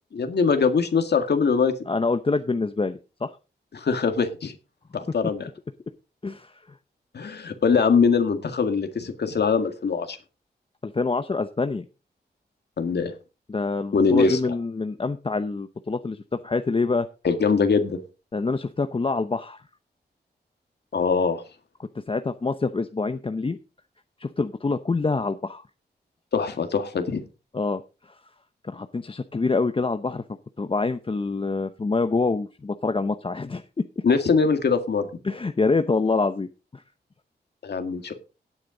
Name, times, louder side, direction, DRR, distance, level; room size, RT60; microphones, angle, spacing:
voice 1, 0.1-1.7 3.7-4.5 4.9-5.5 7.1-10.2 12.8-13.1 13.9-14.5 17.2-18.0 20.9-21.4 26.3-27.2 34.0-35.1 37.6-38.2, left 5 dB, 70° left, 7 dB, 1.9 m, -22 dB
voice 2, 1.9-3.3 6.2-6.5 10.8-11.9 13.5-17.1 18.3-19.6 21.8-23.6 24.2-25.6 27.5-27.8 28.1-28.2 28.6-30.2 30.6-33.6 34.0-34.1 35.2-36.5 36.7-36.8, left 3 dB, 30° left, 9 dB, 0.7 m, -26 dB
17.0 x 8.8 x 3.9 m, 0.32 s
wide cardioid pair, 100°, 18 cm